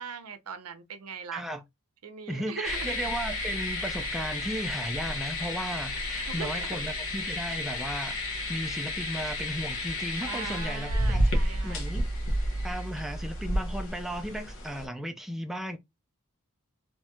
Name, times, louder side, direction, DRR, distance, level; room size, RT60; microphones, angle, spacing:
voice 1, 0.0-1.4 2.0-3.0 6.3-6.9 10.2-11.8, right 6 dB, 80° right, 0.6 m, -40 dB
voice 2, 1.3-1.6 2.3-12.1 12.6-15.8, equal, ahead, 0.4 m, -35 dB
sound 1, 2.6-14.9, left 1 dB, 65° left, 1.1 m, -31 dB
3.0 x 3.0 x 2.2 m
head